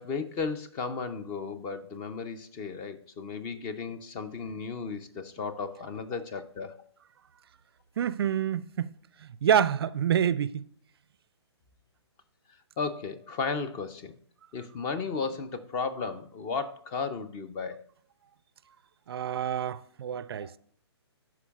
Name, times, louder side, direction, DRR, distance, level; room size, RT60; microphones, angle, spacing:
voice 1, 0.0-6.8 12.8-14.2 14.5-17.8 20.4-20.5, left 4 dB, 25° left, 0.6 m, -34 dB
voice 2, 8.0-8.9 9.2-10.6 19.1-20.6, right 9 dB, 60° right, 0.4 m, -27 dB
12.5 x 4.7 x 2.4 m
hypercardioid pair, 135°, 14 cm